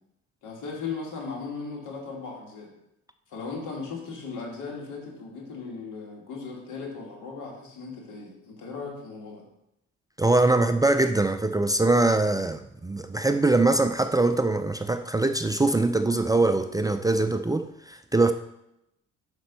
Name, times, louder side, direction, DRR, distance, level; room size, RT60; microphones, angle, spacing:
voice 1, 0.4-2.7 3.3-9.4, left 4 dB, 80° left, 2.3 m, -37 dB
voice 2, 10.2-18.3, right 2 dB, 10° right, 0.3 m, -23 dB
5.9 x 5.2 x 5.4 m
cardioid pair, 90°, 30 cm